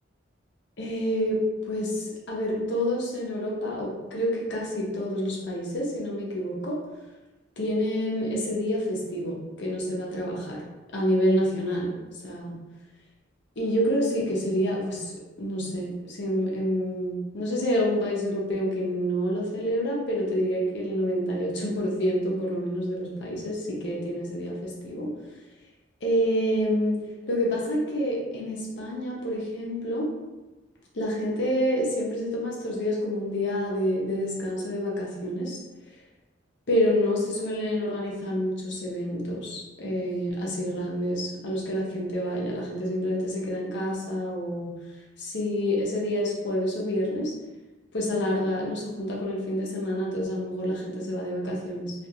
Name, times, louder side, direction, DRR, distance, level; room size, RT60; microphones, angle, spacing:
voice 1, 0.8-6.8 7.6-10.6 10.9-11.9 12.2-12.5 13.6-15.1 15.4-25.1 26.0-27.0 27.3-30.1 30.9-35.6 36.7-44.7 45.2-47.3 47.9-51.9, equal, 65° left, -3 dB, 0.7 m, -28 dB
2.4 x 2.4 x 2.7 m, 1.1 s
head